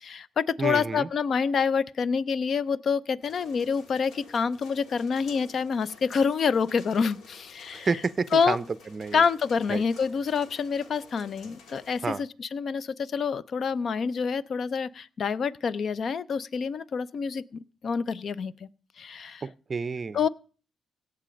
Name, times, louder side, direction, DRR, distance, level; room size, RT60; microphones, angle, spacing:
voice 1, 0.0-7.9 8.3-8.6 9.1-17.4 17.8-18.7 19.0-19.4 20.1-20.3, left 6 dB, 55° left, 0.5 m, -27 dB
voice 2, 0.6-1.1 7.7-8.6 8.9-9.2 9.7-9.8 12.0-12.2 19.4-20.2, right 4 dB, 35° right, 0.5 m, -29 dB
sound 1, 3.2-12.2, left 4 dB, 75° left, 1.7 m, -52 dB
17.0 x 6.7 x 5.1 m
cardioid pair, 75°, 0 cm